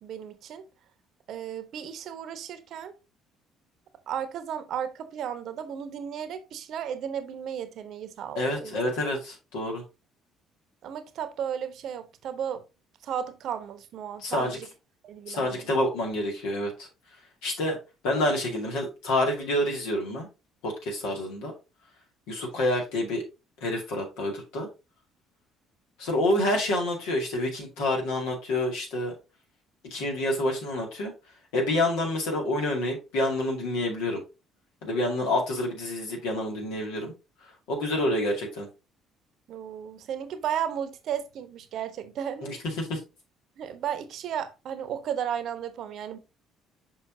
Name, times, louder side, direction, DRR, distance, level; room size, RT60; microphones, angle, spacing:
voice 1, 0.0-0.6 1.3-2.9 4.1-8.8 10.8-12.6 13.0-14.7 15.0-15.7 35.2-35.3 39.5-42.5 43.6-46.2, right 9 dB, 55° right, 0.9 m, -34 dB
voice 2, 8.4-9.8 14.2-14.6 15.3-16.9 17.4-17.8 18.0-20.3 20.6-21.5 22.3-23.2 23.6-24.7 26.0-29.1 29.9-31.1 31.5-34.2 34.8-37.1 37.7-38.7 42.4-43.0, left 1 dB, 65° left, 2.2 m, -28 dB
6.6 x 5.7 x 2.7 m
figure-of-eight pair, 50°, 0 cm